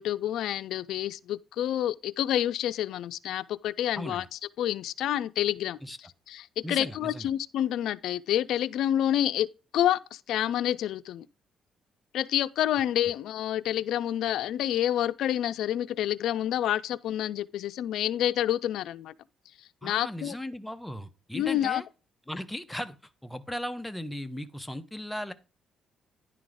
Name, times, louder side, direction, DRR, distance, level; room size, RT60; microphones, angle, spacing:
voice 1, 0.0-4.2 4.6-5.8 6.3-9.5 9.7-11.3 12.1-19.1 19.8-20.3 21.3-21.8, left 11 dB, 80° left, 0.4 m, -28 dB
voice 2, 3.9-4.3 5.8-6.0 6.6-7.3 19.8-21.9 22.3-23.0 23.2-25.3, left 1 dB, 5° left, 0.7 m, -37 dB
10.5 x 3.9 x 4.8 m
cardioid pair, 90°, 0 cm